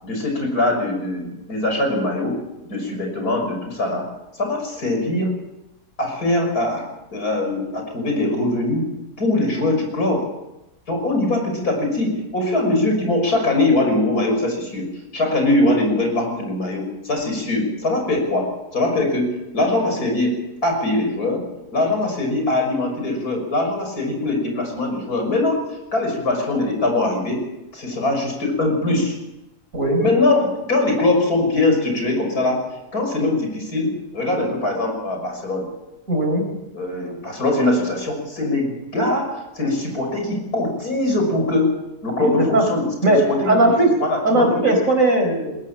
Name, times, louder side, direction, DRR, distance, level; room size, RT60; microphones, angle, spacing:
voice 1, 0.0-2.4 2.6-4.0 4.4-5.3 6.0-6.8 7.1-8.9 9.2-10.2 10.9-14.9 15.1-20.4 20.6-21.4 21.7-25.6 25.9-27.4 27.7-29.2 30.0-32.6 32.9-35.7 36.7-39.3 39.5-41.7 42.0-43.7 44.0-44.5, left 2 dB, 65° left, 3 dB, 6.7 m, -22 dB
voice 2, 36.1-36.5 42.2-42.6 43.0-43.2 43.5-43.9 44.2-45.6, right 1 dB, 50° right, 3 dB, 4.9 m, -18 dB
21.5 x 17.0 x 7.5 m, 0.96 s
omnidirectional pair, 1.7 m